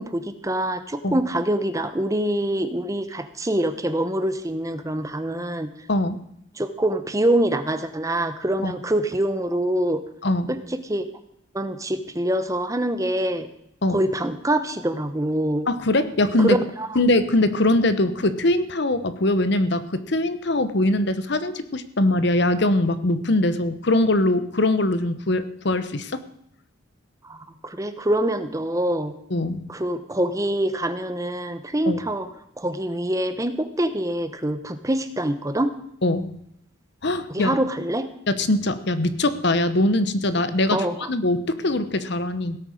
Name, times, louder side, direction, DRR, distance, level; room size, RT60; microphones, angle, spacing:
voice 1, 0.0-5.7 6.6-10.0 10.5-11.1 11.5-13.5 13.9-15.7 16.4-17.0 27.2-29.1 29.7-32.3 32.6-35.7 37.3-38.1 40.7-41.1, right 1 dB, 15° right, 10 dB, 0.9 m, -25 dB
voice 2, 5.9-6.2 8.6-8.7 10.2-10.5 13.8-14.0 15.7-16.6 16.9-26.2 29.3-29.6 31.9-32.0 36.0-36.3 37.0-37.5 38.3-42.6, left 1 dB, 55° left, 12 dB, 1.0 m, -22 dB
16.5 x 8.9 x 6.5 m, 0.73 s
head